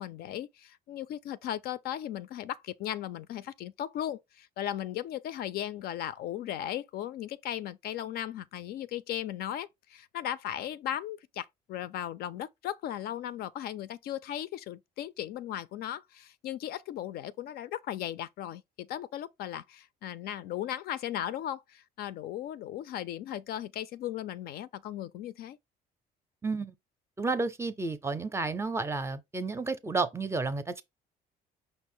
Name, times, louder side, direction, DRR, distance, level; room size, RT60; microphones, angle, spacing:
voice 1, 0.0-25.6, left 11 dB, 65° left, 0.4 m, -37 dB
voice 2, 26.4-26.7 27.2-30.8, right 3 dB, 15° right, 0.5 m, -31 dB
5.3 x 2.0 x 4.3 m
cardioid pair, 110°, 17 cm